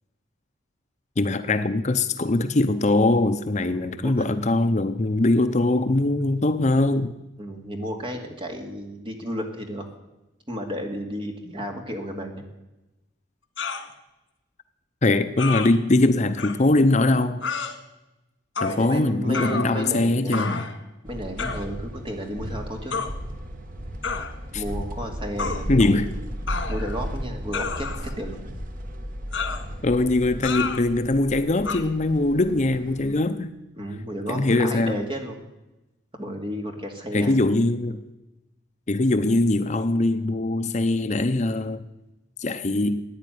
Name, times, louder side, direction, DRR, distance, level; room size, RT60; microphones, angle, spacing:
voice 1, 1.2-7.1 15.0-17.4 18.6-20.6 24.5-24.6 25.7-26.1 29.8-33.5 34.3-35.0 37.1-38.0 38.9-41.8 42.4-43.0, left 2 dB, 40° left, 0.7 m, -22 dB
voice 2, 3.6-4.2 7.4-9.9 10.5-12.5 18.7-20.6 21.0-23.0 24.5-26.0 26.7-28.4 33.8-35.4 36.1-37.4, equal, 25° right, 2.5 m, -33 dB
sound 1, 13.6-13.9 15.4-15.7 16.4-16.5 17.4-17.7 18.6-18.8 19.3-20.0 20.3-20.8 21.4-21.6 22.9-23.1 24.0-24.3 25.4-25.6 26.5-27.0 27.5-28.2 29.3-29.7 30.4-30.8 31.6-31.8, left 5 dB, 80° left, 2.0 m, -29 dB
sound 2, 21.0-33.2, equal, 45° right, 1.5 m, -35 dB
15.5 x 9.9 x 9.4 m
head